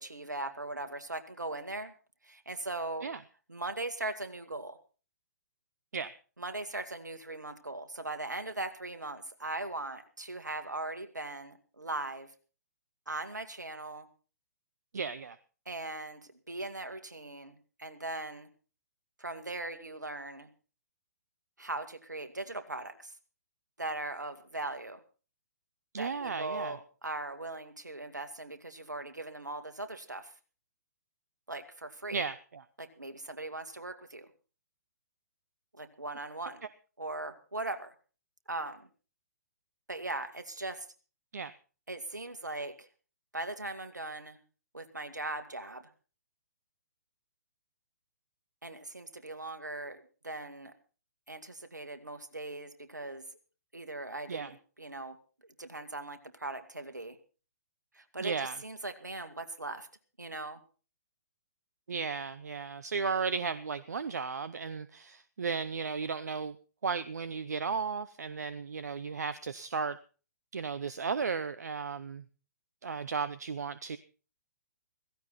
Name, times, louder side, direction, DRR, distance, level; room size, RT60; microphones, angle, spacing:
voice 1, 0.0-1.9 2.2-3.1 3.5-4.8 6.4-12.3 13.1-14.1 15.7-18.5 19.2-20.5 21.6-23.1 23.8-25.0 26.0-30.3 31.5-32.2 32.8-34.3 35.7-36.6 37.0-37.9 38.5-38.9 39.9-40.9 41.9-42.9 43.3-44.4 44.7-45.9 48.6-50.7 51.3-53.2 53.7-55.2 55.6-57.2 57.9-59.9 60.2-60.6, right 2 dB, 85° right, 8 dB, 2.4 m, -39 dB
voice 2, 14.9-15.4 25.9-26.7 32.1-32.6 41.3-41.5 54.3-54.5 58.2-58.6 61.9-66.6 66.8-70.0 70.5-72.2 72.8-74.0, right 5 dB, 70° right, 15 dB, 0.8 m, -35 dB
16.5 x 16.0 x 4.2 m, 0.37 s
figure-of-eight pair, 125°, 9 cm